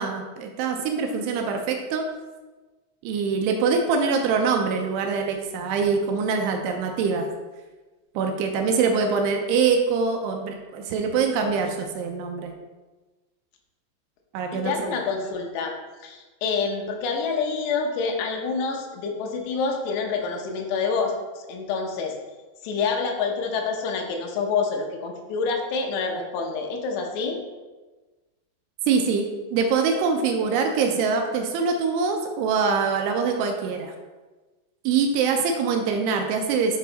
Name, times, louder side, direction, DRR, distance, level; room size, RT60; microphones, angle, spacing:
voice 1, 0.0-2.0 3.0-7.3 8.2-12.5 14.3-15.0 28.9-33.9 34.9-36.8, right 5 dB, 80° right, 3 dB, 2.5 m, -24 dB
voice 2, 14.5-15.7 16.0-22.1 22.6-27.4, left 4 dB, 75° left, 2 dB, 2.9 m, -27 dB
7.8 x 4.7 x 4.0 m, 1.2 s
omnidirectional pair, 5.3 m